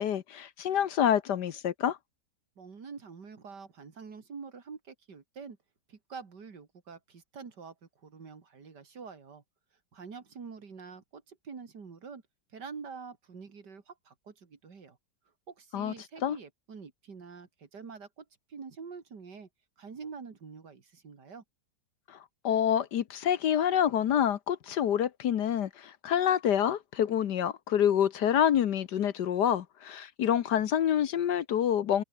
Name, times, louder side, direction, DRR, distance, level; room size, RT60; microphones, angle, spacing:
voice 1, 0.0-2.0 15.7-15.9 16.2-16.4 22.1-22.2 22.4-32.0, left 9 dB, 65° left, 1.5 m, -27 dB
voice 2, 2.6-5.6 5.9-7.7 8.0-9.4 9.9-12.2 12.5-15.0 15.5-18.2 18.5-19.5 19.8-21.4, right 5 dB, 60° right, 3.0 m, -46 dB
omnidirectional pair, 2.0 m